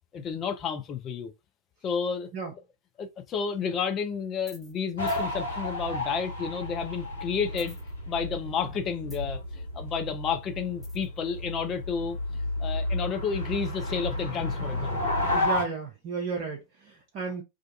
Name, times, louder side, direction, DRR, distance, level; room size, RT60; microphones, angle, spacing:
voice 1, 0.1-1.3 1.8-2.3 3.0-7.8 8.1-15.1, left 6 dB, 30° left, 0.5 m, -31 dB
sound 1, 4.4-4.8 5.1-5.2 7.5-8.3 8.6-9.5 10.8-11.2, left 1 dB, 5° left, 0.9 m, -50 dB
sound 2, 5.0-15.6, left 1 dB, 75° left, 1.4 m, -32 dB
voice 2, 15.3-17.4, right 5 dB, 40° right, 0.5 m, -33 dB
2.4 x 2.2 x 2.6 m
figure-of-eight pair, 90°, 0 cm